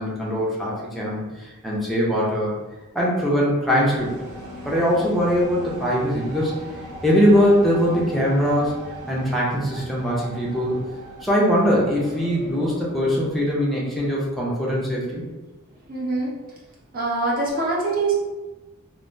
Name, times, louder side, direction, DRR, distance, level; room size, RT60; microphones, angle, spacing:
voice 1, 0.0-2.6 2.9-4.1 4.6-6.5 7.0-8.7 9.1-10.8 11.2-15.2, equal, ahead, -6 dB, 0.6 m, -21 dB
sound 1, 3.9-13.6, right 1 dB, 80° right, 0.8 m, -39 dB
voice 2, 15.9-16.3 16.9-18.1, right 3 dB, 40° right, -5 dB, 0.7 m, -24 dB
3.3 x 2.1 x 2.6 m, 1.1 s
head